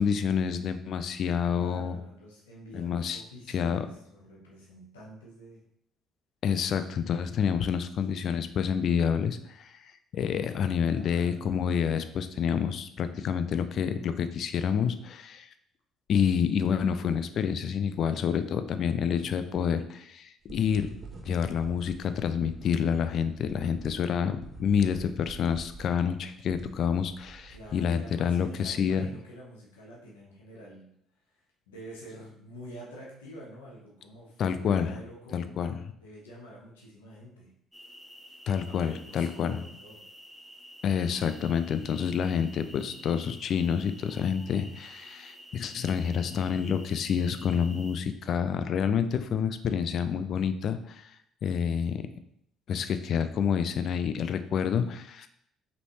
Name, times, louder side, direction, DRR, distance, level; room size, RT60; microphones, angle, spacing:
voice 1, 0.0-2.0 2.7-3.2 3.5-3.9 6.4-15.5 16.1-20.9 21.2-29.1 34.4-35.0 35.3-35.9 38.5-39.6 40.8-51.2 51.4-52.1 52.7-55.3, left 7 dB, 55° left, 11 dB, 0.4 m, -28 dB
voice 2, 1.5-5.6 7.5-7.6 8.3-8.4 10.8-11.5 27.5-30.9 31.7-37.5 38.7-40.0, equal, 85° left, -4 dB, 1.1 m, -47 dB
sound 1, 20.4-28.0, right 3 dB, 40° right, 0.8 m, -47 dB
sound 2, 37.7-48.0, equal, ahead, 1.0 m, -50 dB
5.1 x 3.3 x 3.1 m, 0.72 s
hypercardioid pair, 55°, 0 cm